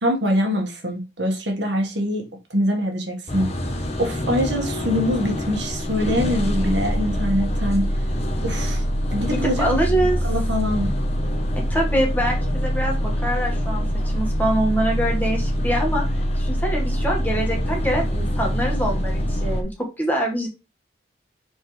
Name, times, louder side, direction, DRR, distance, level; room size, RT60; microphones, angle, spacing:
voice 1, 0.0-3.5 4.0-8.0 8.4-8.8 9.1-9.8 10.0-10.9, equal, 70° right, 1.7 m, -24 dB
sound 1, 3.3-19.6, equal, 35° left, 1.2 m, -24 dB
voice 2, 9.3-10.2 11.7-13.9 14.1-16.1 16.4-19.7 20.0-20.5, right 1 dB, 10° left, 1.7 m, -24 dB
6.4 x 4.6 x 3.3 m
head